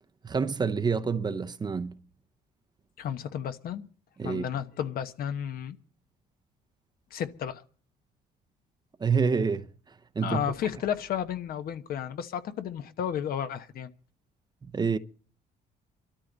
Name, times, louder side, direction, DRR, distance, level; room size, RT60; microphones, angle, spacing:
voice 1, 0.2-2.0 4.2-4.4 9.0-9.7 10.1-10.4 14.7-15.0, right 5 dB, 25° right, 0.7 m, -27 dB
voice 2, 3.0-3.9 4.2-5.8 7.1-7.6 10.2-13.9, left 9 dB, 60° left, 1.1 m, -32 dB
24.0 x 13.0 x 4.0 m
cardioid pair, 110°, 17 cm